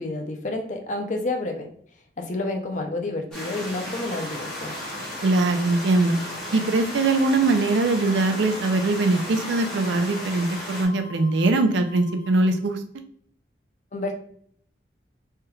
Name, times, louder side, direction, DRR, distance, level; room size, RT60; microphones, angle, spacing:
voice 1, 0.0-1.7 2.2-4.8 13.9-14.1, left 2 dB, 40° left, 4 dB, 0.5 m, -29 dB
sound 1, 3.3-10.8, equal, 5° left, 1.1 m, -35 dB
sound 2, 3.9-12.5, left 6 dB, 30° right, 1.3 m, -44 dB
voice 2, 5.2-6.2 6.5-12.8, right 2 dB, 85° right, 6 dB, 0.5 m, -21 dB
3.3 x 3.0 x 2.3 m, 0.62 s
head